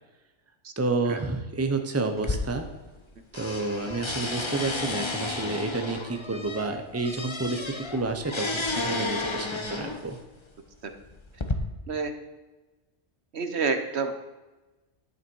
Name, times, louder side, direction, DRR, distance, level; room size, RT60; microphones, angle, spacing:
voice 1, 0.8-2.6 3.3-10.2, right 3 dB, 15° right, 5 dB, 0.9 m, -30 dB
sound 1, 2.2-3.1 3.3-10.2 10.9-11.5, left 2 dB, 25° left, 1.0 m, -32 dB
voice 2, 13.3-14.1, right 5 dB, 65° right, 7 dB, 1.3 m, -28 dB
11.0 x 9.1 x 4.7 m, 1.1 s
omnidirectional pair, 1.2 m